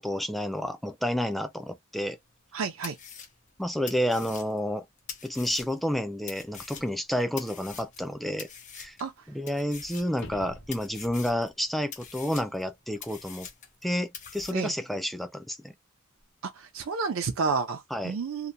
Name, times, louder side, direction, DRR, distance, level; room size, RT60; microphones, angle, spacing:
voice 1, 0.0-2.2 3.6-4.9 5.2-8.5 8.7-9.0 9.3-13.5 13.8-15.7 17.9-18.2, equal, ahead, 0.3 m, -30 dB
sound 1, 2.3-2.4 2.8-5.9 6.3-8.1 8.4-9.1 9.5-10.4 10.7-11.5 11.9-13.8 14.1-14.5, left 7 dB, 35° left, 0.7 m, -44 dB
voice 2, 2.5-3.0 9.0-9.1 14.5-14.7 16.4-18.5, right 5 dB, 80° right, 0.5 m, -30 dB
sound 2, 10.1-11.3 16.2-16.3, left 1 dB, 65° left, 1.0 m, -45 dB
2.8 x 2.1 x 2.5 m
head